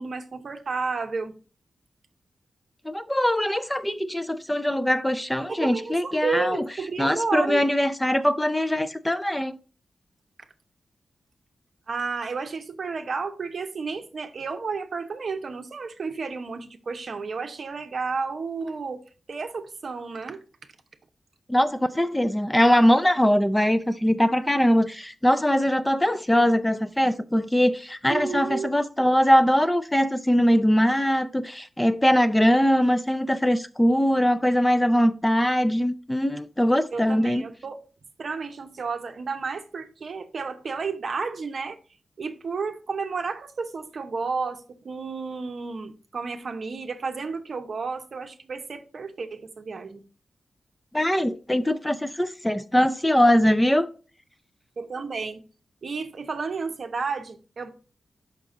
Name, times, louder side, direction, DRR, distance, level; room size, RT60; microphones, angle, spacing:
voice 1, 0.0-1.3 5.5-7.6 11.9-19.0 19.3-20.4 28.1-28.7 36.9-37.8 38.2-41.8 42.2-50.0 54.8-55.4 55.8-57.7, right 4 dB, 50° right, 0.9 m, -32 dB
voice 2, 2.9-6.6 7.0-9.6 21.5-37.4 50.9-53.9, equal, 10° left, 0.3 m, -22 dB
5.9 x 5.8 x 3.8 m
wide cardioid pair, 160°, 0 cm